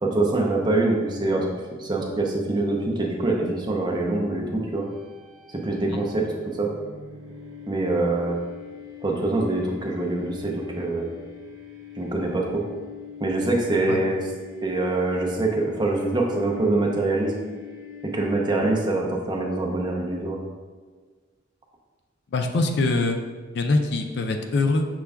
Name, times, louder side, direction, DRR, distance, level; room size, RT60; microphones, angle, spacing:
voice 1, 0.0-1.5 1.8-4.8 5.5-6.3 6.5-6.7 7.7-8.4 9.0-11.1 12.0-12.6 13.2-14.3 14.6-17.3 18.0-20.4, right 2 dB, 20° right, 0 dB, 0.5 m, -24 dB
sound 1, 4.7-18.7, left 8 dB, 85° right, 0.7 m, -43 dB
voice 2, 22.3-23.2 23.5-24.9, left 2 dB, 55° left, 5 dB, 0.3 m, -23 dB
6.0 x 2.2 x 3.4 m, 1.5 s
head